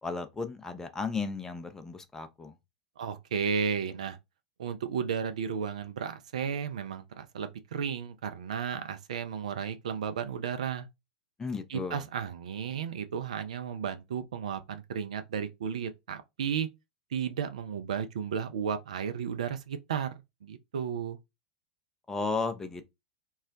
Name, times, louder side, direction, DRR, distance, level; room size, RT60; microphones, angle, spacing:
voice 1, 0.0-2.5 11.4-12.0 22.1-22.8, left 4 dB, 10° left, 0.5 m, -34 dB
voice 2, 3.0-4.2 4.6-10.9 11.7-16.7 17.1-20.1 20.4-21.2, right 7 dB, 65° right, 0.4 m, -33 dB
2.3 x 2.0 x 3.8 m
figure-of-eight pair, 90°, 4 cm